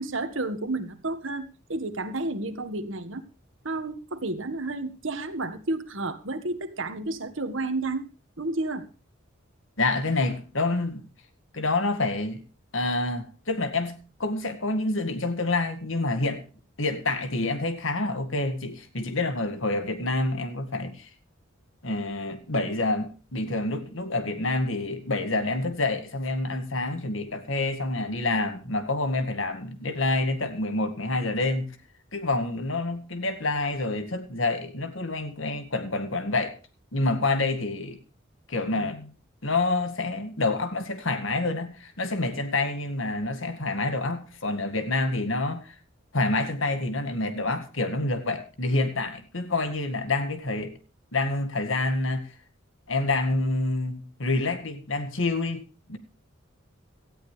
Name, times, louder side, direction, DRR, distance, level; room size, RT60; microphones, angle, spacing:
voice 1, 0.0-3.2 3.6-8.1 8.4-8.9, right 2 dB, 70° right, 1.7 m, -31 dB
voice 2, 9.8-11.0 11.5-12.4 12.7-16.4 16.8-21.1 21.8-31.8 32.1-36.6 36.9-38.0 38.5-39.1 39.4-45.8 46.1-50.7 51.1-52.3 52.9-56.0, left 2 dB, 70° left, 2.0 m, -27 dB
18.0 x 13.5 x 3.3 m
head